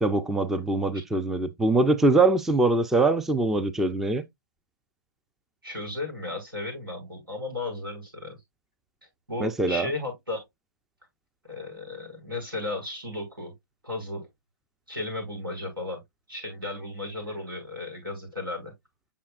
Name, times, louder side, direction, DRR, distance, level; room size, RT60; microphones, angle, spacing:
voice 1, 0.0-4.2 9.4-9.9, right 2 dB, 5° right, 0.4 m, -23 dB
voice 2, 5.6-8.4 9.3-10.4 11.5-13.5 13.8-14.3 14.9-16.0 16.3-18.7, left 2 dB, 85° right, 5.6 m, -34 dB
8.4 x 5.9 x 2.4 m
figure-of-eight pair, 130°, 11 cm